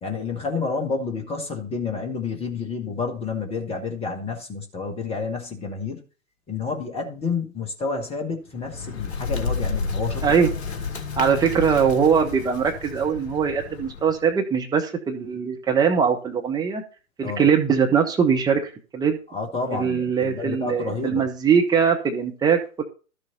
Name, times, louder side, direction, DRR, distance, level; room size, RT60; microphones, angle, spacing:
voice 1, 0.0-6.0 6.5-10.3 17.2-17.5 19.3-21.3, left 4 dB, 15° left, 4 dB, 1.8 m, -29 dB
Bird, 8.5-14.2, left 4 dB, 50° left, 1.8 m, -31 dB
voice 2, 11.2-16.8 17.2-19.2 19.7-22.8, right 6 dB, 10° right, 2 dB, 0.9 m, -21 dB
12.5 x 6.7 x 4.1 m, 0.35 s
figure-of-eight pair, 115°, 42 cm